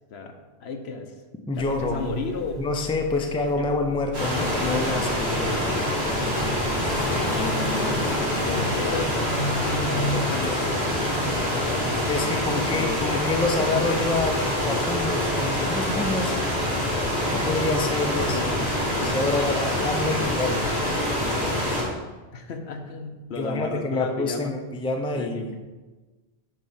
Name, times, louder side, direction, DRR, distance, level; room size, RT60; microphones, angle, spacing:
voice 1, 0.1-1.2 1.5-2.6 8.3-9.2 9.7-12.4 12.7-13.2 18.1-18.5 22.3-24.6 25.1-25.5, left 4 dB, 80° left, 5 dB, 1.1 m, -34 dB
sound 1, 1.5-10.5, left 1 dB, 55° left, 1.1 m, -33 dB
voice 2, 1.5-2.2 2.6-5.7 12.1-16.4 17.3-18.5 19.0-21.0 23.4-25.4, left 3 dB, 5° left, 4 dB, 0.4 m, -27 dB
sound 2, 4.1-21.8, left 1 dB, 80° right, 2.9 m, -25 dB
9.5 x 3.2 x 5.5 m, 1.2 s
omnidirectional pair, 1.1 m